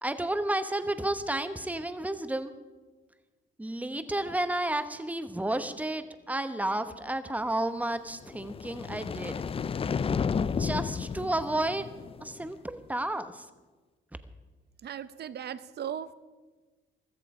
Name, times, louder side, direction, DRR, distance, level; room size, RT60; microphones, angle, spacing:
voice 1, 0.0-2.5 3.6-9.3 10.4-11.9 12.2-13.4, right 1 dB, 5° right, 10 dB, 1.1 m, -31 dB
sound 1, 8.2-12.5, left 6 dB, 30° left, 0.4 m, -32 dB
voice 2, 14.8-16.1, right 9 dB, 55° right, 15 dB, 0.8 m, -37 dB
15.0 x 13.5 x 5.0 m, 1.3 s
cardioid pair, 90°, 20 cm